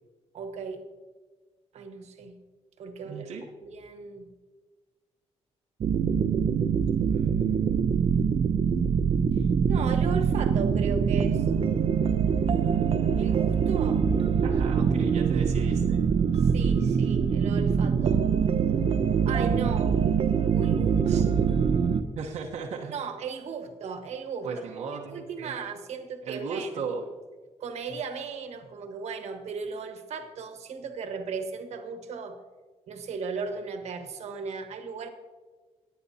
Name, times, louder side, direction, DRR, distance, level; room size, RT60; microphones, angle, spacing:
voice 1, 0.3-0.8 1.7-2.4 2.8-3.3 3.6-4.3 7.1-8.0 9.3-11.5 12.1-12.2 13.2-14.1 16.3-18.3 19.2-19.9 20.5-21.3 22.9-24.5 25.1-26.7 27.6-32.4 32.9-35.1, right 5 dB, 70° right, 6 dB, 1.4 m, -36 dB
voice 2, 3.0-3.4 14.4-16.0 21.1-21.2 22.1-22.9 24.4-25.6 26.2-27.1, right 5 dB, 90° right, -2 dB, 1.1 m, -36 dB
sound 1, 5.8-22.0, right 6 dB, 55° right, 0.7 m, -24 dB
19.0 x 8.4 x 2.8 m, 1.3 s
cardioid pair, 105°, 11 cm